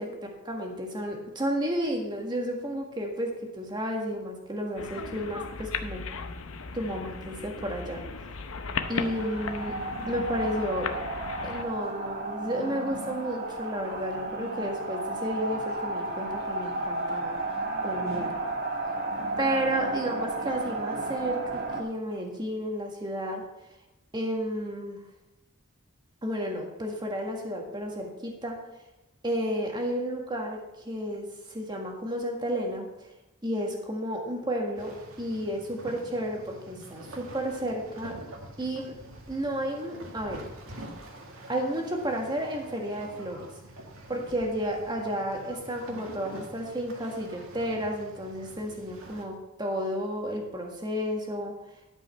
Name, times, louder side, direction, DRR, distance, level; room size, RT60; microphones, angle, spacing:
voice 1, 0.4-6.0 6.7-8.0 8.9-9.8 10.1-10.9 11.4-17.4 17.8-18.4 19.4-23.4 24.1-25.0 26.2-28.6 29.2-32.8 33.4-38.2 38.6-38.9 39.3-40.4 41.5-43.5 44.1-51.5, equal, 20° right, 1 dB, 1.7 m, -32 dB
sound 1, 4.8-11.6, left 4 dB, 75° left, 0.8 m, -36 dB
sound 2, 8.8-21.8, right 2 dB, 50° right, 1.4 m, -33 dB
sound 3, 34.8-49.2, right 1 dB, 80° right, 1.8 m, -46 dB
12.5 x 5.5 x 5.7 m, 0.95 s
head